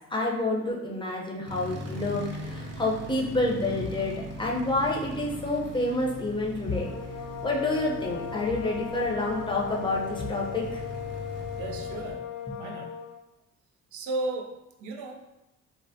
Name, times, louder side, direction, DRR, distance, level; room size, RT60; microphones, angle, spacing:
voice 1, 0.1-6.9 7.4-10.8, left 2 dB, 15° left, -2 dB, 0.6 m, -28 dB
sound 1, 1.5-12.1, right 1 dB, 40° right, 0.6 m, -40 dB
sound 2, 6.6-13.2, left 10 dB, 70° left, 0.4 m, -38 dB
voice 2, 11.6-12.3 12.6-13.0 13.9-14.5 14.8-15.2, right 2 dB, 75° right, 2 dB, 0.5 m, -34 dB
3.3 x 2.0 x 2.6 m, 0.94 s
cardioid pair, 90°, 30 cm